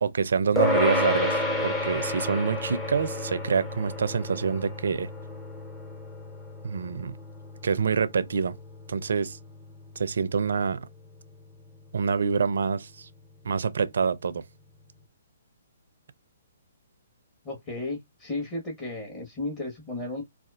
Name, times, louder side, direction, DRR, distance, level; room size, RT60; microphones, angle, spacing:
voice 1, 0.0-5.1 6.6-7.2 7.6-8.5 8.9-9.4 10.0-10.9 11.9-13.1 13.4-14.4, right 6 dB, 70° right, 0.4 m, -26 dB
sound 1, 0.6-10.2, left 1 dB, 10° left, 0.7 m, -31 dB
voice 2, 17.4-20.2, left 2 dB, 25° left, 1.3 m, -34 dB
4.1 x 2.4 x 2.4 m
hypercardioid pair, 135°, 0 cm